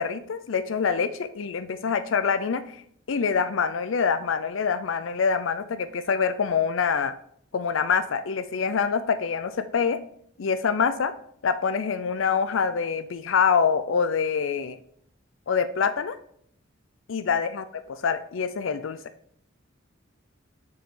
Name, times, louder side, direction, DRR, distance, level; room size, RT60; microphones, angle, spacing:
voice 1, 0.0-2.8 3.1-7.2 7.5-10.0 10.4-11.1 11.4-14.8 15.5-16.2 17.1-19.0, left 6 dB, 75° left, 11 dB, 0.5 m, -25 dB
7.1 x 6.1 x 3.7 m, 0.66 s
head